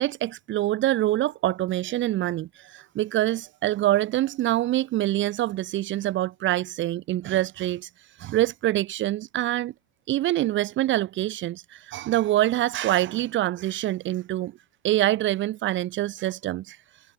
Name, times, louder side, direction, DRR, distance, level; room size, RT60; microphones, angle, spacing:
voice 1, 0.0-9.7 10.1-14.5 14.8-16.8, right 14 dB, 35° right, 4.6 m, -25 dB
hypercardioid pair, 105°, 32 cm